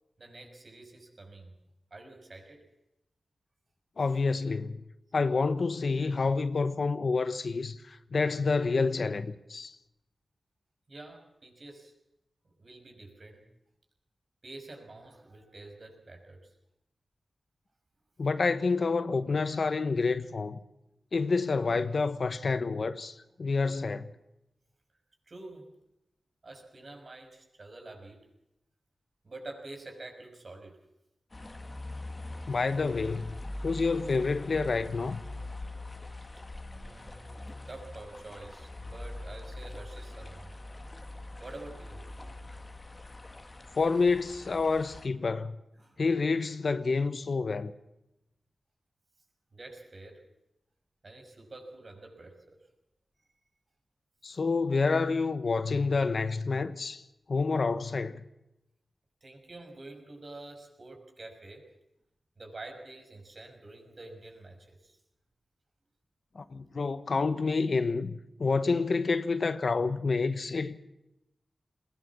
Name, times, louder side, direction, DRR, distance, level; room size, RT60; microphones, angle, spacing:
voice 1, 0.2-1.5 1.9-2.6 10.9-11.9 12.6-13.5 14.4-16.5 25.3-25.7 26.4-28.2 29.2-30.8 36.7-37.4 37.7-40.5 41.4-42.0 45.8-46.0 49.5-50.2 51.0-52.6 59.2-61.7 62.4-65.0, right 2 dB, 50° right, 6.0 m, -47 dB
voice 2, 4.0-4.8 5.1-9.8 18.2-20.6 21.1-24.1 32.5-33.4 33.6-35.2 43.7-45.6 46.0-47.7 54.2-57.0 57.3-58.2 66.3-70.8, left 4 dB, 65° left, 1.1 m, -28 dB
sound 1, 31.3-45.1, left 2 dB, 30° left, 1.9 m, -43 dB
20.5 x 18.0 x 7.3 m
cardioid pair, 55°, 0 cm